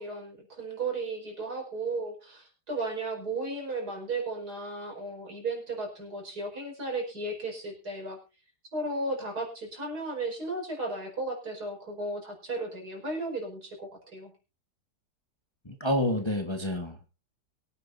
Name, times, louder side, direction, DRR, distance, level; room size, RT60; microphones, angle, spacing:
voice 1, 0.0-8.2 8.7-14.3, right 2 dB, 65° right, 1 dB, 5.4 m, -35 dB
voice 2, 15.6-17.1, left 1 dB, 15° left, 4 dB, 1.4 m, -29 dB
23.0 x 9.3 x 2.7 m, 0.30 s
omnidirectional pair, 1.8 m